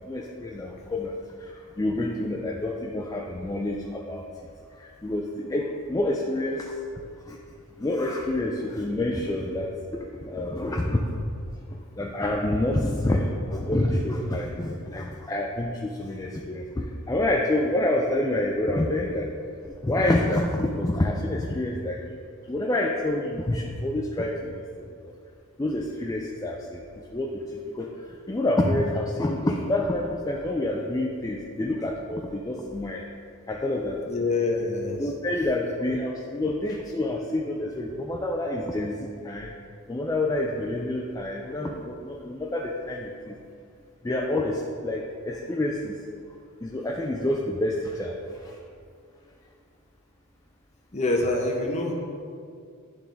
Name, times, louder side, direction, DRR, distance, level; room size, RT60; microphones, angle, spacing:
voice 1, 0.1-1.1 1.4-4.2 4.8-6.7 7.3-7.4 7.8-11.1 12.0-19.3 19.8-22.2 22.5-24.5 25.6-26.8 27.1-27.4 27.7-27.9 28.3-33.0 33.5-34.0 35.0-39.5 39.9-43.4 44.0-45.9 46.6-48.2 48.4-48.5, left 1 dB, 15° left, -1 dB, 0.4 m, -27 dB
voice 2, 34.0-35.1 50.9-51.9, left 2 dB, 30° left, 0 dB, 0.9 m, -26 dB
10.5 x 3.7 x 3.4 m, 2.3 s
head